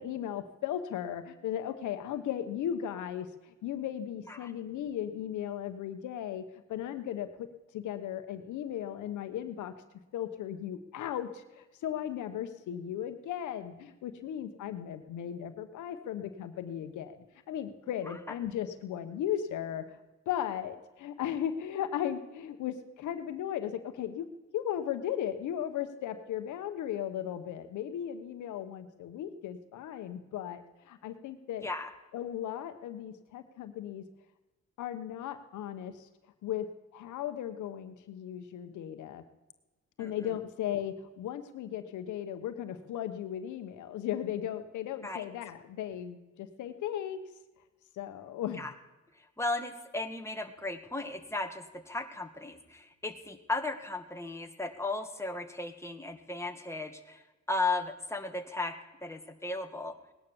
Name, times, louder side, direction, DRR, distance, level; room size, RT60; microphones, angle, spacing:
voice 1, 0.0-3.3 3.6-7.5 7.7-9.7 10.1-17.2 17.5-19.8 20.3-24.3 24.5-31.7 32.1-34.1 34.8-36.1 36.4-39.2 40.0-47.2 48.0-48.6, left 10 dB, 90° left, 9 dB, 1.2 m, -36 dB
voice 2, 40.0-40.4 45.0-45.2 48.6-48.7 49.2-58.7 59.0-60.0, left 2 dB, 10° left, 5 dB, 2.0 m, -36 dB
18.5 x 10.5 x 7.1 m, 1.1 s
cardioid pair, 70°, 29 cm